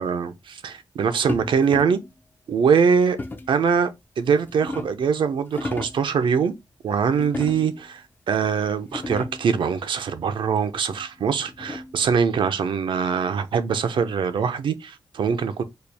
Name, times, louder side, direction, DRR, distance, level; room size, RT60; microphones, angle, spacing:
voice 1, 0.0-2.0 2.5-3.2 3.5-3.9 4.2-6.5 6.8-15.6, right 6 dB, 75° right, 0.6 m, -23 dB
sound 1, 1.3-2.1 3.2-3.6 4.3-5.1 5.5-6.1 7.2-7.9 8.5-8.6 8.8-9.5 10.9-12.1, left 2 dB, 25° left, 0.5 m, -34 dB
4.3 x 2.3 x 3.3 m
wide cardioid pair, 100°, 8 cm